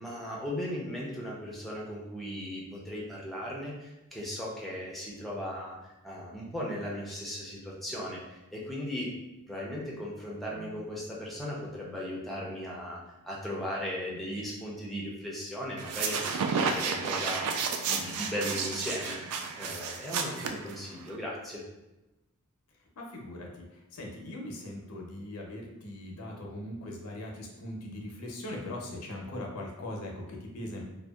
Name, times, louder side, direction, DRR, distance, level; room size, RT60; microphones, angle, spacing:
voice 1, 0.0-5.8 6.0-9.2 9.5-13.0 13.3-19.2 19.6-21.6, equal, ahead, -5 dB, 0.4 m, -37 dB
sound 1, 15.8-21.1, right 5 dB, 80° right, 0.3 m, -32 dB
voice 2, 23.0-30.8, left 1 dB, 85° left, 0 dB, 0.5 m, -40 dB
2.6 x 2.1 x 2.2 m, 0.99 s
head